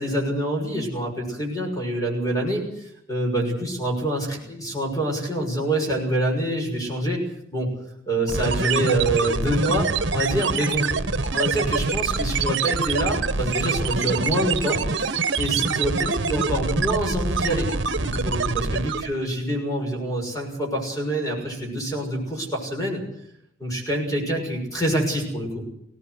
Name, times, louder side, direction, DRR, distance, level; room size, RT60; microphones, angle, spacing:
voice 1, 0.0-7.2 7.5-7.7 8.1-10.9 11.3-17.7 18.0-23.0 23.6-25.6, right 1 dB, 20° left, 1 dB, 6.5 m, -26 dB
sound 1, 8.3-19.2, right 4 dB, 65° right, 1.2 m, -25 dB
21.5 x 18.0 x 8.1 m, 0.77 s
head